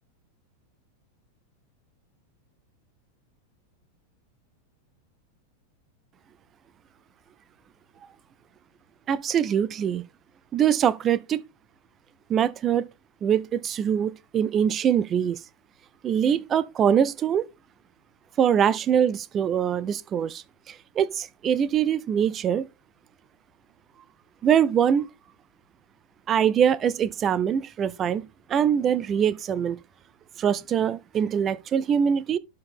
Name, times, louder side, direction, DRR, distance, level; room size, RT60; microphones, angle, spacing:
voice 1, 9.1-10.0 10.5-11.4 12.3-12.9 13.2-15.4 16.0-17.4 18.4-22.7 24.4-25.1 26.3-28.2 28.5-29.8 30.4-32.4, right 8 dB, 25° right, 0.5 m, -23 dB
11.5 x 4.5 x 3.5 m
figure-of-eight pair, 90°, 0 cm